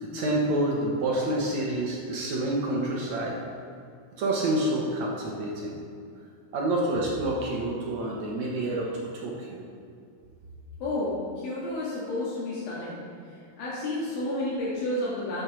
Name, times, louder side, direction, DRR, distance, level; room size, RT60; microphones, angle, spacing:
voice 1, 0.0-3.4 4.2-5.8 6.5-9.6, right 1 dB, 65° right, -3 dB, 2.1 m, -28 dB
voice 2, 10.8-13.0 13.3-15.4, left 1 dB, 80° left, -8 dB, 3.7 m, -31 dB
8.3 x 7.0 x 6.1 m, 2.4 s
omnidirectional pair, 4.0 m